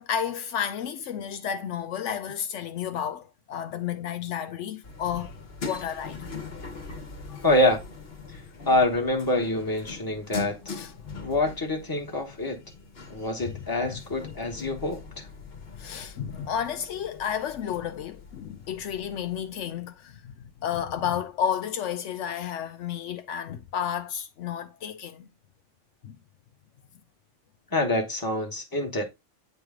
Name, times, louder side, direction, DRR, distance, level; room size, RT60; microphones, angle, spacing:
voice 1, 0.0-5.3 5.6-6.3 7.3-7.4 10.7-10.9 13.4-13.5 15.8-25.2 26.0-26.2, left 9 dB, 75° left, 0.9 m, -32 dB
sound 1, 4.8-19.6, left 4 dB, 55° left, 1.3 m, -42 dB
voice 2, 7.4-7.8 8.3-8.4 8.7-10.6 11.2-12.6 13.1-15.3 27.7-29.0, left 1 dB, 20° left, 1.3 m, -26 dB
9.1 x 3.2 x 3.6 m
omnidirectional pair, 1.3 m